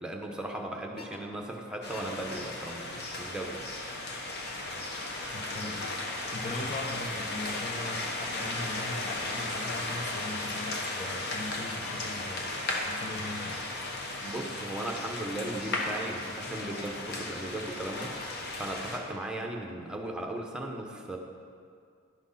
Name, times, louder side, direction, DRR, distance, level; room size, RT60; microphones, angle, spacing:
voice 1, 0.0-3.6 14.2-21.2, right 1 dB, 5° right, 1 dB, 0.9 m, -37 dB
sound 1, 1.0-1.2 1.9-2.2 2.7-2.8 3.5-3.7 4.4-4.7 5.8-6.0 7.5-7.7 8.0-8.3 9.3-11.2 11.7-12.0 12.3-12.6 13.5-13.9 14.3-14.7 15.6-15.8 17.7-19.0, left 4 dB, 70° left, 0.8 m, -51 dB
sound 2, 1.8-19.0, left 2 dB, 55° left, 1.1 m, -35 dB
voice 2, 5.3-12.6 12.8-13.7, left 2 dB, 35° left, 5 dB, 0.6 m, -40 dB
11.0 x 6.1 x 5.7 m, 2.3 s
head